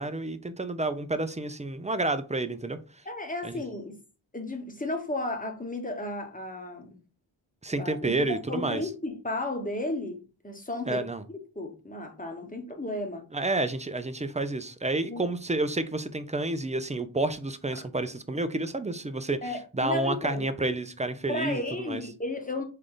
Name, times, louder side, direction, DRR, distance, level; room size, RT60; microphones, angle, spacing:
voice 1, 0.0-2.8 3.4-3.6 7.6-8.8 10.9-11.2 13.3-22.0, right 2 dB, 15° right, 0.4 m, -30 dB
voice 2, 3.0-4.0 4.3-7.0 7.7-13.2 15.1-15.2 17.7-17.8 19.4-20.5 21.3-22.6, left 2 dB, 15° left, 1.1 m, -34 dB
3.7 x 3.2 x 3.8 m
wide cardioid pair, 65°, 48 cm